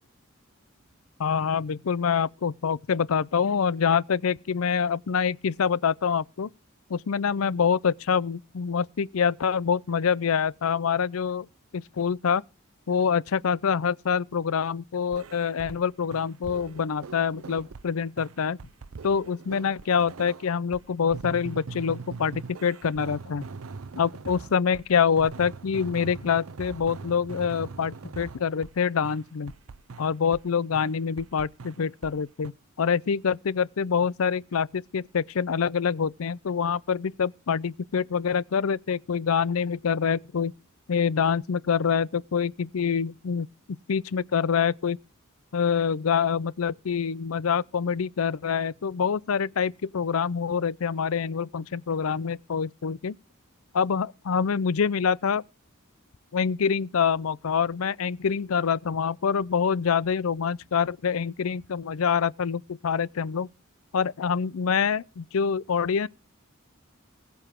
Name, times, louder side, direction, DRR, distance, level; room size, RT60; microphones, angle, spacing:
voice 1, 1.2-6.5 6.9-11.5 11.7-12.4 12.9-18.6 19.0-23.4 24.0-29.5 30.0-32.5 32.8-40.5 40.9-43.5 43.9-45.0 45.5-53.2 53.7-55.4 56.3-63.5 63.9-66.1, left 6 dB, 85° left, 0.5 m, -26 dB
sound 1, 15.1-15.8 16.1-17.9 18.2-24.9 25.2-28.8 29.0-30.5 30.7-32.2 32.4-32.5, right 4 dB, 80° right, 0.6 m, -42 dB
20.0 x 7.0 x 3.7 m
head